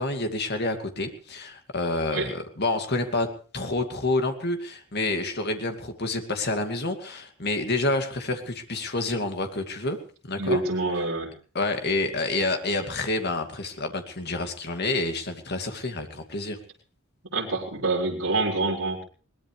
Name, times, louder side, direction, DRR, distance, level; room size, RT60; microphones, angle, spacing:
voice 1, 0.0-3.3 3.5-10.0 10.3-10.6 11.5-16.6, left 2 dB, 50° left, 6 dB, 2.3 m, -28 dB
voice 2, 10.4-11.3 17.3-19.0, right 2 dB, 65° right, -4 dB, 4.4 m, -26 dB
22.0 x 19.5 x 3.4 m, 0.39 s
head